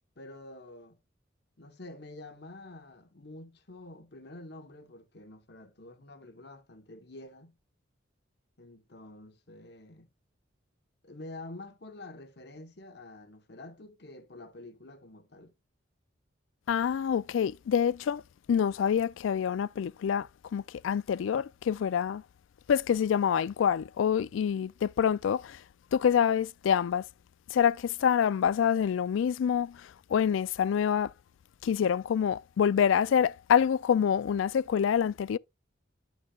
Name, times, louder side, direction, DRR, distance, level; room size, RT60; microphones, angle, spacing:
voice 1, 0.2-1.0 1.6-7.6 8.6-10.1 11.0-15.5, left 2 dB, 55° left, 1.1 m, -48 dB
voice 2, 16.7-18.2 18.5-22.2 22.7-25.6 25.9-27.1 27.5-31.1 31.6-35.4, left 8 dB, 75° left, 0.3 m, -26 dB
11.5 x 6.1 x 2.3 m
head